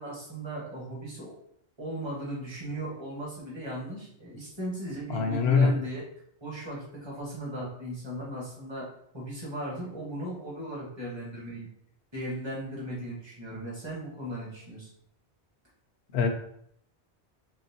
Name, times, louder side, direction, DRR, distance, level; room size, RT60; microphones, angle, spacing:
voice 1, 0.0-1.3 1.8-6.0 6.4-8.9 9.1-11.7 12.1-14.9, right 1 dB, 25° right, -5 dB, 1.3 m, -37 dB
voice 2, 5.1-5.8 16.1-16.3, left 5 dB, 75° left, 5 dB, 0.8 m, -23 dB
4.1 x 3.1 x 2.8 m, 0.68 s
omnidirectional pair, 1.1 m